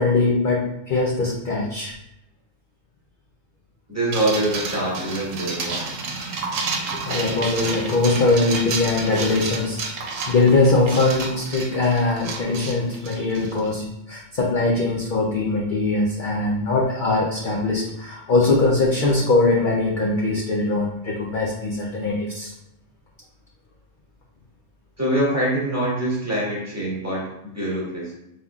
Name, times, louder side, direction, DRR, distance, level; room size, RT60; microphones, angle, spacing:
voice 1, 0.0-1.9 6.9-22.5, left 3 dB, 50° left, -2 dB, 0.7 m, -21 dB
voice 2, 3.9-5.8 25.0-28.1, right 1 dB, 10° right, -6 dB, 1.4 m, -24 dB
sound 1, 4.1-13.7, right 4 dB, 80° right, 1.1 m, -30 dB
5.3 x 3.5 x 2.4 m, 0.84 s
omnidirectional pair, 1.3 m